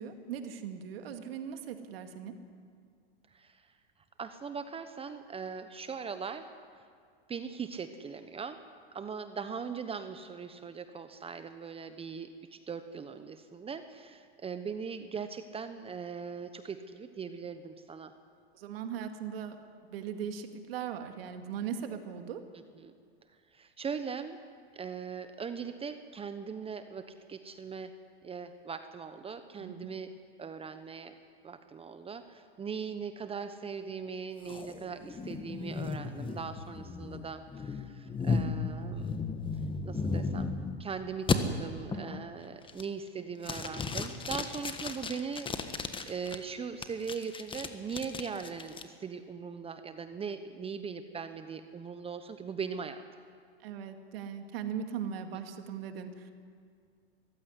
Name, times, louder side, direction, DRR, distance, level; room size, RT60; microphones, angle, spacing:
voice 1, 0.0-2.3 18.5-19.6 19.9-22.4 29.6-29.9 41.9-42.2 53.6-56.3, right 8 dB, 70° right, 6 dB, 2.3 m, -39 dB
voice 2, 3.3-3.7 4.2-6.5 7.3-8.6 8.9-18.1 22.8-22.9 23.5-24.4 24.7-27.9 28.2-30.1 30.4-31.1 31.4-39.1 39.8-40.5 40.8-53.0, right 6 dB, 20° right, 9 dB, 1.0 m, -40 dB
sound 1, 34.5-40.8 41.3-41.4 41.9-42.2 42.6-43.1 43.4-46.4 46.8-48.8, left 4 dB, 15° left, 1.5 m, -35 dB
22.0 x 15.5 x 9.8 m, 2.2 s
hypercardioid pair, 110°, 31 cm